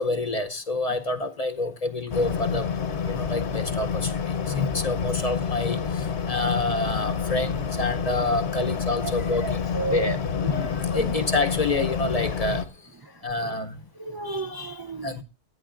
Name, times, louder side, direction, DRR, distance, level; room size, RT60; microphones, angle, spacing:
voice 1, 0.0-2.7 3.0-4.1 4.5-10.2 10.5-12.7 13.2-13.8 15.0-15.2, left 2 dB, 40° left, 0.7 m, -28 dB
sound 1, 2.1-12.7, left 6 dB, 75° left, 1.2 m, -28 dB
voice 2, 9.4-10.1 10.5-11.2 14.0-15.1, right 2 dB, 30° right, 0.4 m, -32 dB
17.0 x 11.0 x 2.5 m
omnidirectional pair, 1.2 m